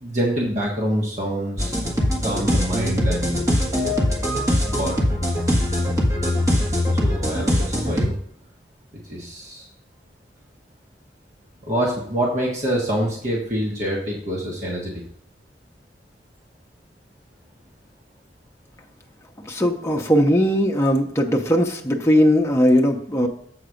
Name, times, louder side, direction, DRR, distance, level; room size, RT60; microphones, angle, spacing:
voice 1, 0.0-1.7 2.2-3.4 4.6-5.0 7.0-8.1 9.1-9.7 11.6-15.0, equal, 45° right, -3 dB, 1.4 m, -25 dB
sound 1, 1.6-8.1, equal, 20° right, 1.4 m, -22 dB
voice 2, 19.5-23.3, equal, 15° left, 1 dB, 0.8 m, -19 dB
7.8 x 4.0 x 6.3 m, 0.64 s
head